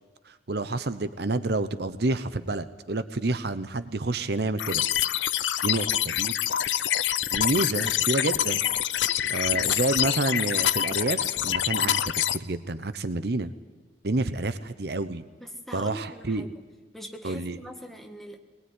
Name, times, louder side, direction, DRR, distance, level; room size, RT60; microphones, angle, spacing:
voice 1, 0.3-4.8 5.6-6.3 7.3-8.6 9.3-13.5 14.0-15.2 15.7-16.5 17.2-17.6, right 2 dB, 60° right, 12 dB, 0.9 m, -29 dB
sound 1, 4.6-12.4, left 11 dB, 85° left, 0.7 m, -26 dB
voice 2, 15.4-16.5 16.9-18.4, equal, ahead, 3 dB, 1.7 m, -42 dB
21.0 x 20.0 x 9.7 m, 1.3 s
head